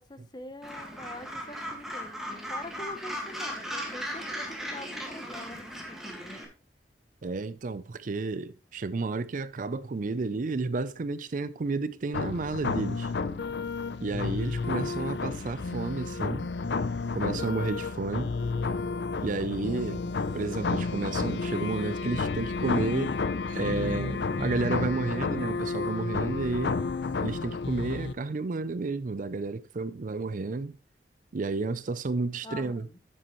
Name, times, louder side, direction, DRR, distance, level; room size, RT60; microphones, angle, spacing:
voice 1, 0.0-6.4 19.4-20.1 32.4-33.0, left 1 dB, 25° left, 0.8 m, -45 dB
Gull seagull, 0.6-6.4, equal, ahead, 1.8 m, -37 dB
voice 2, 7.2-13.1 14.0-16.5 17.1-18.3 19.2-20.0 20.3-23.2 23.5-26.8 27.2-30.8 31.3-32.9, right 3 dB, 50° right, 0.5 m, -31 dB
sound 1, 12.1-28.1, left 4 dB, 70° left, 0.6 m, -31 dB
9.9 x 7.6 x 3.0 m
head